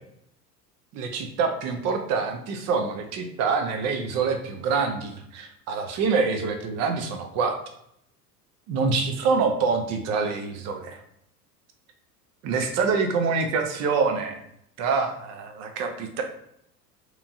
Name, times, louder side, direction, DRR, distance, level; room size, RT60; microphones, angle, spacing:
voice 1, 0.9-7.6 8.7-11.0 12.4-14.4 14.8-16.2, right 5 dB, 35° right, 5 dB, 0.5 m, -26 dB
2.9 x 2.5 x 2.3 m, 0.73 s
figure-of-eight pair, 80°, 48 cm